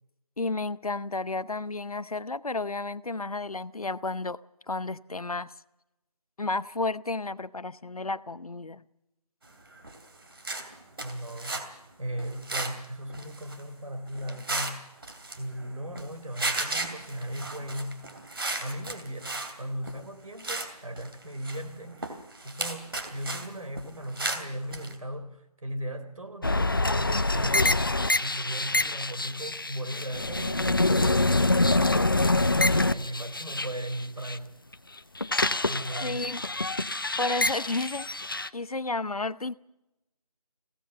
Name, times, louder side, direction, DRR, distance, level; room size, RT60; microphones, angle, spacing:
voice 1, 0.4-4.4 4.7-5.5 6.4-8.8 36.0-36.5 37.2-38.1 38.5-39.5, left 3 dB, 65° left, 0.9 m, -32 dB
sound 1, 9.8-10.1 10.3-11.7 12.2-12.8 13.1-13.6 14.1-14.8 15.0-16.1 16.3-19.5 19.8-20.0 20.4-20.7 21.0-23.5 23.7-24.9, right 2 dB, 35° right, 2.8 m, -35 dB
voice 2, 11.0-11.6 12.0-14.9 15.4-18.1 18.6-27.9 28.2-34.6 35.7-36.3, equal, 60° right, 4.1 m, -37 dB
sound 2, 26.4-34.4 34.7-38.5, left 2 dB, 35° left, 0.6 m, -26 dB
22.0 x 17.0 x 7.0 m
figure-of-eight pair, 170°, 20 cm